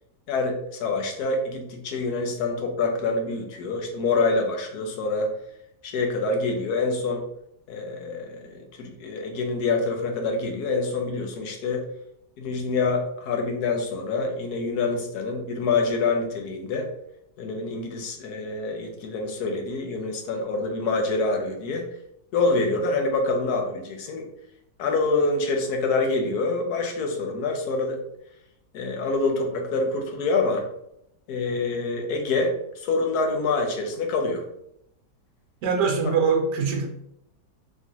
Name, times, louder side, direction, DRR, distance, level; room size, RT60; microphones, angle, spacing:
voice 1, 0.3-5.4 5.8-7.3 7.7-11.8 12.4-16.9 17.4-21.9 22.3-24.3 24.8-28.0 28.7-30.7 31.3-34.5 36.0-36.1, left 3 dB, 70° left, 3 dB, 1.2 m, -26 dB
voice 2, 35.6-36.9, right 5 dB, 75° right, 3 dB, 1.4 m, -22 dB
4.4 x 3.1 x 2.8 m, 0.77 s
omnidirectional pair, 1.8 m